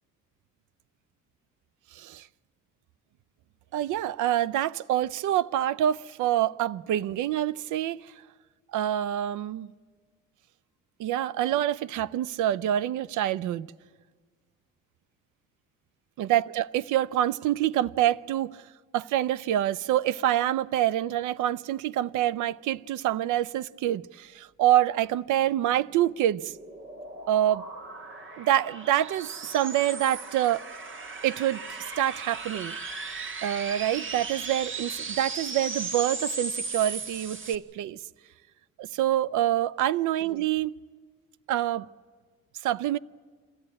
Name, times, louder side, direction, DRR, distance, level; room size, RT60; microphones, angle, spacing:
voice 1, 1.9-2.3 3.7-8.1 8.7-9.7 11.0-13.7 16.2-18.6 18.9-26.5 27.3-27.7 28.4-30.6 31.2-31.6 32.0-32.8 33.4-38.0 38.8-40.7 41.5-41.9 42.6-43.0, right 12 dB, 85° right, 0.6 m, -26 dB
sound 1, 25.9-37.6, right 4 dB, 40° right, 1.6 m, -37 dB
25.5 x 14.0 x 9.6 m
cardioid pair, 90°, 30 cm